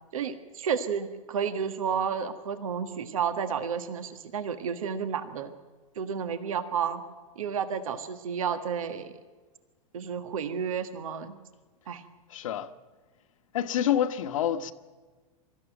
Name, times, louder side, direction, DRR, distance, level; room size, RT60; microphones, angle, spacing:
voice 1, 0.1-5.5 5.9-7.0 7.3-9.1 9.9-11.4 11.9-12.0, right 7 dB, 70° right, 1.5 m, -31 dB
voice 2, 12.3-12.7 13.5-14.7, left 10 dB, 65° left, 1.4 m, -27 dB
24.5 x 14.0 x 9.1 m
hypercardioid pair, 100°, 18 cm